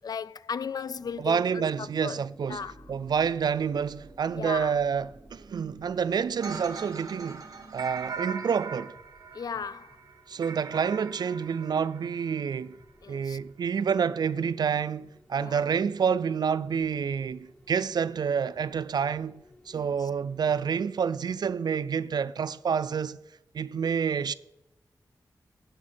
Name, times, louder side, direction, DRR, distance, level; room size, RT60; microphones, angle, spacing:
voice 1, 0.0-2.2 2.5-2.7 4.3-4.8 9.3-10.0 13.0-13.4 15.4-15.6 19.7-20.1, left 6 dB, 65° left, 0.4 m, -36 dB
sound 1, 0.9-8.2, right 2 dB, 10° right, 1.6 m, -54 dB
voice 2, 1.2-7.5 7.7-9.0 10.3-12.8 13.1-23.2 23.5-24.3, right 7 dB, 75° right, 0.4 m, -28 dB
sound 2, 2.5-20.6, equal, 15° left, 1.4 m, -59 dB
sound 3, 6.4-12.5, right 5 dB, 55° right, 1.2 m, -40 dB
13.5 x 8.3 x 4.4 m
wide cardioid pair, 105°, 7 cm